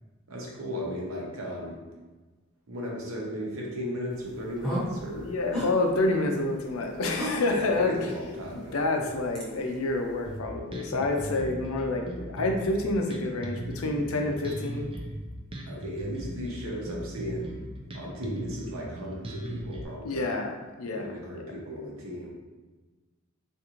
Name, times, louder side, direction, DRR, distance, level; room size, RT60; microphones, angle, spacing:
voice 1, 0.3-1.8 2.7-5.3 7.5-9.1 15.7-17.5 17.9-20.3 20.9-22.3, equal, 80° right, -2 dB, 0.9 m, -36 dB
sound 1, 4.1-10.4, equal, 5° left, 0.8 m, -38 dB
voice 2, 5.2-8.0 8.5-14.9 20.0-21.1, left 2 dB, 85° left, 3 dB, 0.5 m, -28 dB
Bass guitar, 10.3-19.9, right 1 dB, 25° right, 0.4 m, -38 dB
3.6 x 2.6 x 2.9 m, 1.3 s
head